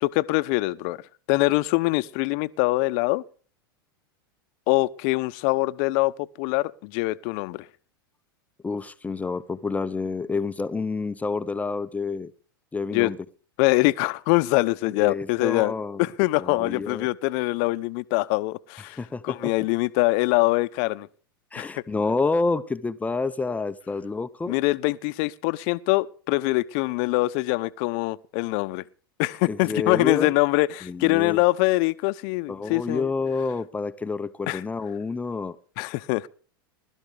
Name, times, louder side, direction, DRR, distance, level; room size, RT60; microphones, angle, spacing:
voice 1, 0.0-1.0 1.3-3.2 4.7-7.6 12.9-13.1 13.6-15.7 16.0-19.0 19.2-21.1 21.6-21.7 24.5-28.8 29.2-33.0 34.5-34.6 35.8-36.3, left 21 dB, 55° left, 0.8 m, -23 dB
voice 2, 8.6-12.3 12.7-13.2 15.0-16.1 16.4-17.1 19.0-19.5 21.5-24.6 29.5-30.3 30.8-31.4 32.5-35.6, left 4 dB, 10° left, 0.7 m, -28 dB
21.0 x 13.0 x 3.4 m
hypercardioid pair, 105°, 12 cm